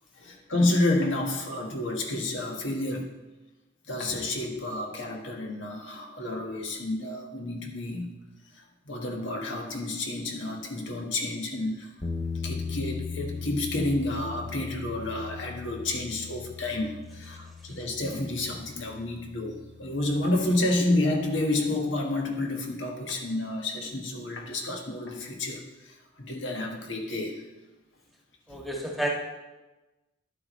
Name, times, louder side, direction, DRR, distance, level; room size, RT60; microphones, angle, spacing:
voice 1, 0.2-3.1 3.9-8.1 8.6-11.9 12.4-27.4 28.5-28.6, left 2 dB, 70° left, 1 dB, 1.5 m, -30 dB
sound 1, 12.0-20.9, left 4 dB, 20° left, 0.8 m, -39 dB
voice 2, 28.5-29.1, right 1 dB, ahead, -3 dB, 1.4 m, -30 dB
11.5 x 8.5 x 3.1 m, 1.1 s
head